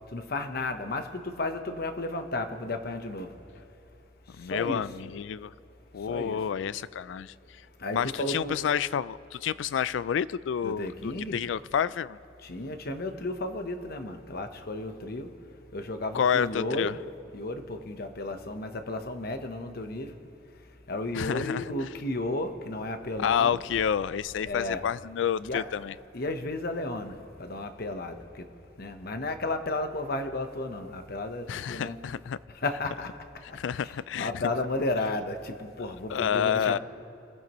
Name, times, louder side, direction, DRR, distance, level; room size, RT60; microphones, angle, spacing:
voice 1, 0.1-3.3 4.5-4.8 6.1-6.4 7.8-8.6 10.6-11.4 12.4-15.3 15.7-16.9 17.3-20.1 20.9-23.6 24.4-24.9 25.4-25.7 26.1-28.5 28.8-32.0 32.6-33.1 33.5-36.8, left 2 dB, 55° left, 1.0 m, -33 dB
voice 2, 4.4-5.5 5.9-7.3 7.9-12.2 16.1-16.9 21.1-21.7 23.2-25.9 31.5-32.4 33.5-34.5 36.1-36.8, left 8 dB, 75° left, 0.3 m, -29 dB
26.0 x 14.5 x 3.1 m
head